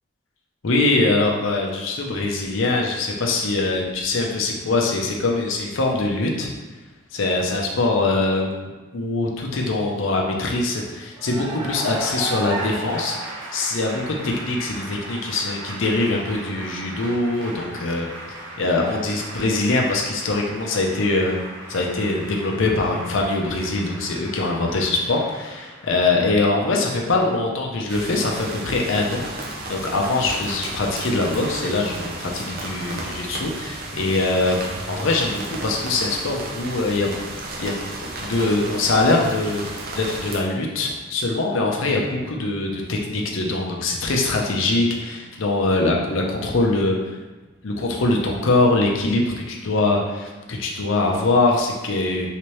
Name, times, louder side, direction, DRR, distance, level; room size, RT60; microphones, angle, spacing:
voice 1, 0.6-6.5 7.1-18.1 18.6-21.4 21.7-34.6 34.9-37.1 37.6-37.8 38.0-39.7 39.9-47.0 47.6-52.3, left 2 dB, 75° left, 0 dB, 0.6 m, -23 dB
Cheering / Applause, 11.1-26.1, right 2 dB, 70° right, 1.0 m, -36 dB
sound 1, 27.9-40.4, right 2 dB, 45° right, 0.4 m, -33 dB
3.3 x 3.0 x 3.1 m, 1.2 s
head